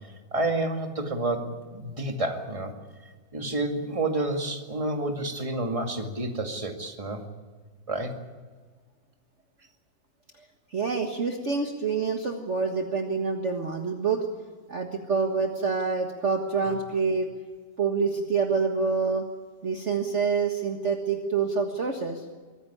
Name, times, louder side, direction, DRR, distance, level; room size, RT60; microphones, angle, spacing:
voice 1, 0.3-2.7 3.3-7.2 7.9-8.1, right 2 dB, 15° right, 4 dB, 2.2 m, -29 dB
voice 2, 10.7-14.2 14.7-17.3 17.8-19.2 19.6-22.3, right 5 dB, 40° right, 3 dB, 1.8 m, -27 dB
24.0 x 15.0 x 9.8 m, 1.5 s
omnidirectional pair, 2.0 m